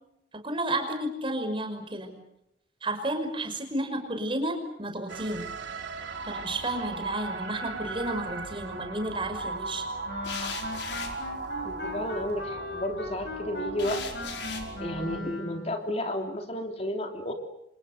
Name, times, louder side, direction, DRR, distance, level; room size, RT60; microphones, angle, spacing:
voice 1, 0.4-2.2 2.8-5.5 6.3-9.9, right 1 dB, 30° right, 6 dB, 5.5 m, -32 dB
sound 1, 5.1-15.2, right 3 dB, 90° right, 3.5 m, -38 dB
sound 2, 8.0-8.5 10.2-12.3 13.8-14.7, left 6 dB, 80° left, 5.1 m, -39 dB
Wind instrument woodwind instrument, 10.1-15.7, left 2 dB, 65° left, 6.2 m, -38 dB
voice 2, 11.6-14.1 14.8-17.3, left 1 dB, 35° left, 4 dB, 3.3 m, -32 dB
30.0 x 27.0 x 6.8 m, 0.81 s
head